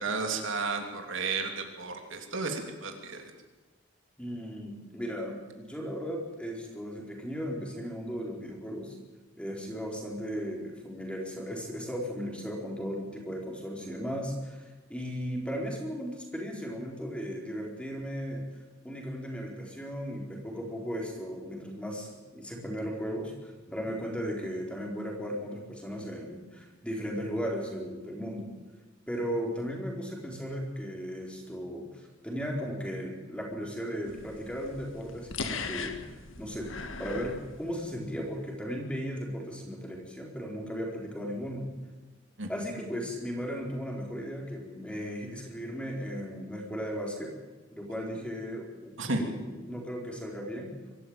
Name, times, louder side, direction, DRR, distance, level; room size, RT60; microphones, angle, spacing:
voice 1, 0.0-3.3 42.4-42.5 47.9-48.0 49.0-49.2, right 3 dB, 65° right, 4 dB, 3.1 m, -33 dB
voice 2, 4.2-9.0 9.4-18.4 18.8-28.5 29.1-36.0 36.4-36.7 37.0-41.7 42.5-47.3 47.7-50.8, equal, 5° left, 0 dB, 4.3 m, -36 dB
sound 1, 34.1-38.2, left 4 dB, 65° left, 1.9 m, -39 dB
24.0 x 14.0 x 8.9 m, 1.2 s
head